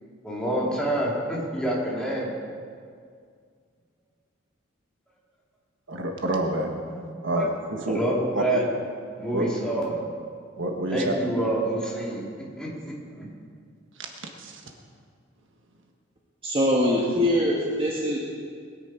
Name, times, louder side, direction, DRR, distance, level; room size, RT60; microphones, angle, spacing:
voice 1, 0.2-2.3 6.9-7.0 7.3-7.4 7.9-8.6 9.2-9.9 10.9-12.2 12.6-13.2, right 1 dB, 5° left, -6 dB, 3.4 m, -27 dB
voice 2, 5.9-6.8 7.2-8.0 8.3-8.4 9.3-9.5 10.6-11.1 14.4-14.6, right 1 dB, 65° right, 3 dB, 1.4 m, -27 dB
voice 3, 16.4-18.2, equal, 30° right, -4 dB, 1.5 m, -23 dB
21.0 x 10.0 x 4.6 m, 2.1 s
head